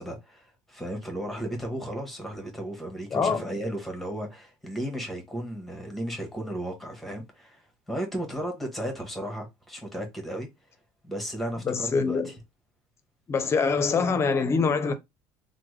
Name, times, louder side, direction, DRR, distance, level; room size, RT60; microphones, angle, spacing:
voice 1, 0.0-10.5 11.0-12.4, right 1 dB, ahead, 1.2 m, -34 dB
voice 2, 3.1-3.5 11.7-12.3 13.3-14.9, left 5 dB, 30° left, 0.6 m, -24 dB
3.3 x 2.1 x 3.2 m
cardioid pair, 125°, 9 cm